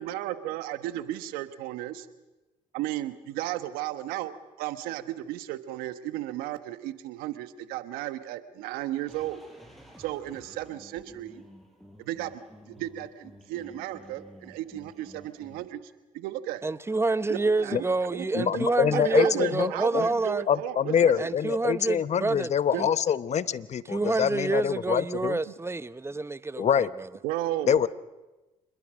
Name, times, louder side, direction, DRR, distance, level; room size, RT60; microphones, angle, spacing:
voice 1, 0.0-2.1 2.7-9.4 10.0-11.4 12.0-12.3 12.7-15.8 16.1-16.6 17.3-17.9 18.1-18.6 18.9-21.3 22.7-22.8 25.5-25.6 27.2-27.9, right 14 dB, 80° right, 1.3 m, -34 dB
sound 1, 9.1-15.6, equal, ahead, 7.3 m, -52 dB
voice 2, 16.6-20.4 21.2-22.5 22.8-22.9 23.9-26.7 27.0-27.1, right 3 dB, 15° right, 0.9 m, -28 dB
voice 3, 18.3-20.1 20.5-25.4 26.6-26.9 27.7-27.9, left 8 dB, 50° left, 0.9 m, -25 dB
26.5 x 21.5 x 6.4 m
supercardioid pair, 65°, 15 cm